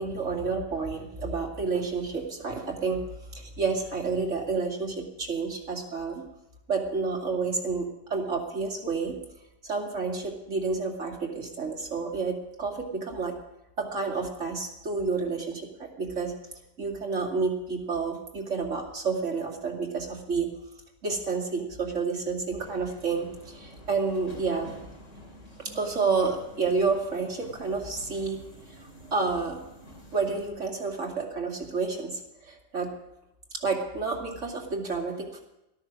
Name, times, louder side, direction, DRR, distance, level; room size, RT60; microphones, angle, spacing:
voice 1, 0.0-3.0 3.3-6.2 6.7-9.2 9.6-13.4 13.8-16.3 16.8-20.5 21.0-24.7 25.6-28.4 28.8-29.6 30.1-32.9 33.5-35.4, right 4 dB, 75° right, 0 dB, 2.8 m, -30 dB
Subway metro underground, 22.6-30.5, equal, 80° left, 3.7 m, -49 dB
13.5 x 13.0 x 6.3 m, 0.89 s
omnidirectional pair, 1.3 m